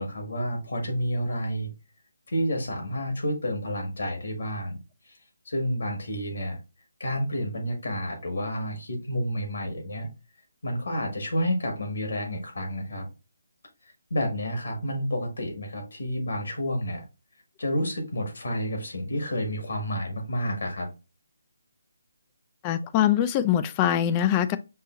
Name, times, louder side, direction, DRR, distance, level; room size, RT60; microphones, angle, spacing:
voice 1, 0.0-1.7 2.3-4.8 5.4-6.6 7.0-10.1 10.6-13.1 14.1-17.0 17.6-20.9, equal, 70° left, 1.8 m, -30 dB
voice 2, 22.6-24.6, left 10 dB, 20° left, 0.3 m, -23 dB
5.5 x 2.7 x 2.5 m
figure-of-eight pair, 155°, 0 cm